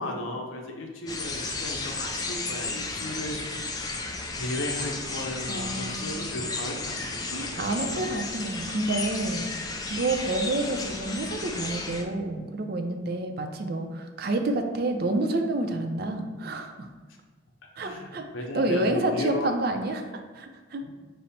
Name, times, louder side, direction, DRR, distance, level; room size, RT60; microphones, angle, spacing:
voice 1, 0.0-3.4 3.8-3.9 4.4-8.0 17.8-19.5 20.8-20.9, left 1 dB, 85° left, 2 dB, 0.7 m, -35 dB
sound 1, 1.1-12.0, left 3 dB, 20° left, 0.3 m, -33 dB
voice 2, 5.5-6.3 7.3-9.5 9.9-16.9 17.8-18.2 18.5-20.8, right 2 dB, 50° right, 5 dB, 0.4 m, -29 dB
5.1 x 2.0 x 4.2 m, 1.4 s
head